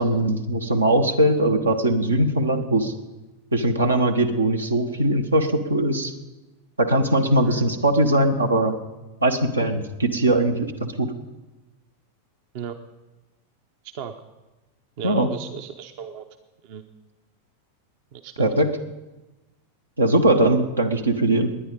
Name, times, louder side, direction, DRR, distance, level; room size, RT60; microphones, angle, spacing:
voice 1, 0.0-2.9 3.5-6.1 6.8-8.8 9.2-11.1 15.0-15.3 18.4-18.7 20.0-21.5, right 1 dB, 80° right, 7 dB, 1.2 m, -20 dB
voice 2, 15.0-16.2 16.6-16.8 18.1-18.5, right 7 dB, 45° right, 9 dB, 0.8 m, -35 dB
19.0 x 10.0 x 5.3 m, 1.1 s
figure-of-eight pair, 90°, 0 cm